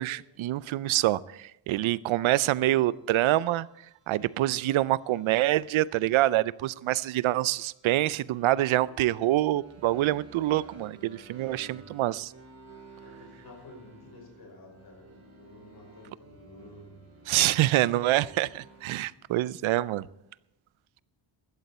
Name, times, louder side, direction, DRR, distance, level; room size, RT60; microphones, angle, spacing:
voice 1, 0.0-3.7 4.1-12.3 17.3-20.1, right 15 dB, 85° right, 0.6 m, -26 dB
sound 1, 2.5-19.1, right 3 dB, 30° right, 4.6 m, -54 dB
voice 2, 11.2-11.8 13.0-17.0, left 1 dB, 50° left, 5.7 m, -51 dB
16.5 x 12.5 x 4.3 m
wide cardioid pair, 140°, 46 cm